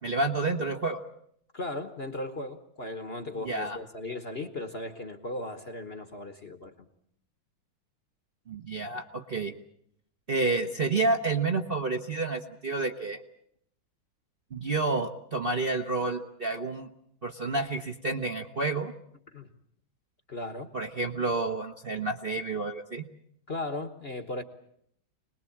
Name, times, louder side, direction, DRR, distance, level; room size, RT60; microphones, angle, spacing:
voice 1, 0.0-1.0 3.4-3.8 8.5-9.5 10.3-13.2 14.5-16.9 17.2-18.9 20.7-23.0, right 3 dB, 35° right, 2 dB, 1.0 m, -29 dB
voice 2, 1.5-6.7 19.3-19.5 20.3-20.7 23.5-24.4, left 2 dB, 35° left, 8 dB, 1.2 m, -37 dB
26.0 x 20.0 x 8.6 m, 0.70 s
omnidirectional pair, 2.2 m